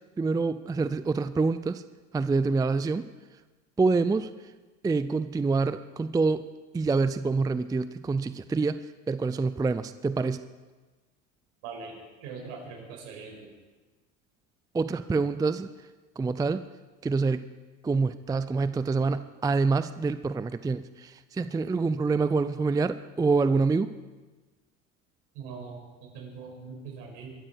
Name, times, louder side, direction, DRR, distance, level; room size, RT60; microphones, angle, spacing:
voice 1, 0.2-1.8 2.1-3.1 3.8-4.3 4.8-6.5 6.7-10.4 14.7-15.7 16.2-16.6 17.0-17.4 17.8-23.9, right 4 dB, 10° right, 13 dB, 0.5 m, -26 dB
voice 2, 11.6-11.9 12.2-13.5 25.3-27.3, right 5 dB, 65° right, 1 dB, 6.0 m, -41 dB
22.5 x 13.0 x 4.7 m, 1.3 s
hypercardioid pair, 85°, 40 cm